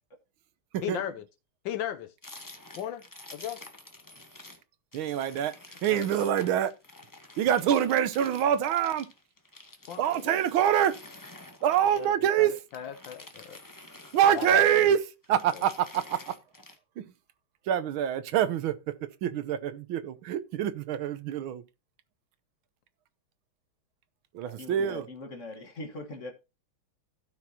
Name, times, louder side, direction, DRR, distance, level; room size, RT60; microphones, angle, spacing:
voice 1, 0.8-1.2 1.6-2.1 2.7-3.6 5.9-6.1 9.9-10.4 12.0-13.6 14.3-14.9 15.5-15.7, left 10 dB, 70° left, 1.3 m, -37 dB
sound 1, 2.2-4.6 4.9-12.2 12.6-14.9 15.2-16.8, left 2 dB, 15° left, 0.6 m, -49 dB
voice 2, 4.9-5.5 5.8-6.7 7.4-9.1 10.0-11.0 11.6-12.5 14.1-15.0 15.3-16.4 17.0-17.1 17.7-21.6 24.3-25.1, right 10 dB, 75° right, 1.6 m, -25 dB
voice 3, 14.2-14.9 19.3-19.4 24.4-26.3, left 2 dB, 40° left, 1.5 m, -42 dB
16.0 x 6.0 x 2.8 m
omnidirectional pair, 2.3 m